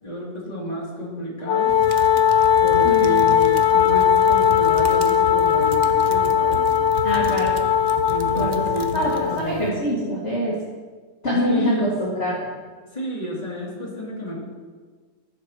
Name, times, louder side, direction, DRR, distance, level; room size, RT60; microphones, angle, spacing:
voice 1, 0.0-1.7 2.6-6.7 8.1-9.7 11.5-11.9 12.9-14.4, equal, 20° left, -5 dB, 2.6 m, -31 dB
Wind instrument woodwind instrument, 1.5-9.5, left 9 dB, 75° left, 0.6 m, -19 dB
sound 1, 1.7-9.7, right 6 dB, 85° right, 0.4 m, -35 dB
voice 2, 7.0-7.5 8.4-8.6 8.9-10.5 11.2-12.4, equal, 40° left, -7 dB, 2.0 m, -24 dB
19.0 x 7.6 x 2.9 m, 1.5 s
omnidirectional pair, 1.9 m